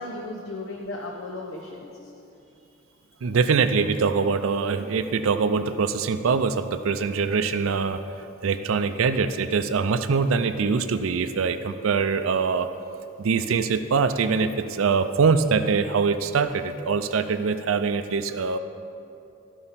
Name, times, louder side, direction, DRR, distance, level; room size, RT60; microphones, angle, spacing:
voice 1, 0.0-2.6, left 2 dB, 70° left, -1 dB, 0.9 m, -36 dB
voice 2, 3.2-8.0 8.4-12.7 13.2-18.6, right 5 dB, 80° right, 10 dB, 0.4 m, -23 dB
13.5 x 5.4 x 5.6 m, 2.7 s
head